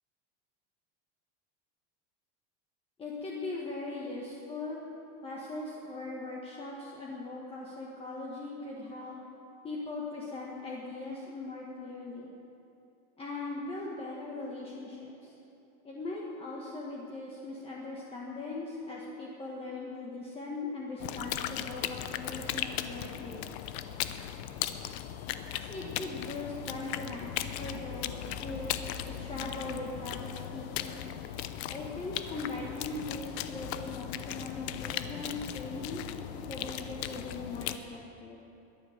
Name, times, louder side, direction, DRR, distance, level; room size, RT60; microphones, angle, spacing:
voice 1, 3.0-4.8 5.2-9.2 9.6-12.3 13.2-15.3 15.8-23.5 25.6-28.7 29.0-31.0 31.7-36.0 36.5-38.4, left 2 dB, 15° left, -4 dB, 1.4 m, -40 dB
sound 1, 21.0-37.8, left 11 dB, 70° left, 0.8 m, -37 dB
22.0 x 8.2 x 6.5 m, 2.8 s
supercardioid pair, 160°, 34 cm